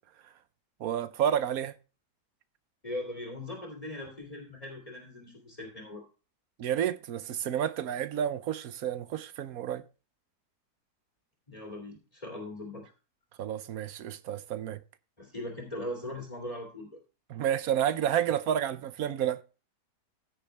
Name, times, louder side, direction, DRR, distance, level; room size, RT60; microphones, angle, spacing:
voice 1, 0.8-1.7 6.6-9.8 13.4-14.8 17.3-19.4, right 10 dB, 65° right, 1.1 m, -30 dB
voice 2, 2.8-6.0 11.5-12.9 15.2-17.0, left 1 dB, 20° left, 2.6 m, -40 dB
15.0 x 6.7 x 3.3 m
omnidirectional pair, 1.7 m